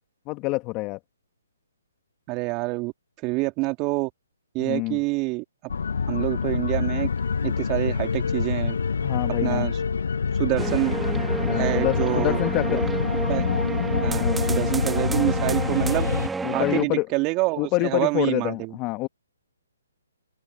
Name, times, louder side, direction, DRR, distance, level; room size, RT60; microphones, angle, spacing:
voice 1, 0.3-1.0 4.6-5.0 9.0-9.7 11.4-12.9 14.2-14.4 16.4-17.1 17.6-19.1, left 23 dB, 25° left, 1.9 m, -26 dB
voice 2, 2.3-2.9 3.2-4.1 4.5-5.4 6.1-7.1 7.4-8.7 9.4-9.8 10.4-11.0 11.5-12.4 12.7-12.8 13.3-13.5 14.0-16.1 16.5-18.8, right 25 dB, 25° right, 2.9 m, -26 dB
sound 1, 5.7-16.3, left 5 dB, 65° left, 1.1 m, -26 dB
sound 2, 10.6-16.8, right 4 dB, 5° right, 1.3 m, -30 dB
figure-of-eight pair, 140°, 0 cm